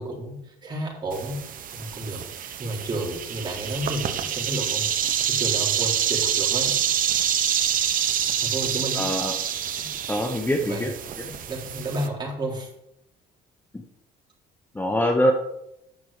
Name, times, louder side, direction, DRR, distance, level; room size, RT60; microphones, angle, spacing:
voice 1, 0.0-1.4 1.7-4.9 5.3-6.7 8.4-9.1 9.8-9.9 10.6-10.9 11.2-12.7, right 1 dB, 25° right, -3 dB, 4.0 m, -32 dB
sound 1, 1.1-12.1, right 9 dB, 55° right, 1.1 m, -27 dB
voice 2, 8.9-9.3 10.1-10.9 14.7-15.3, equal, 10° left, 3 dB, 1.0 m, -23 dB
9.6 x 5.9 x 6.6 m, 0.83 s
cardioid pair, 110°, 17 cm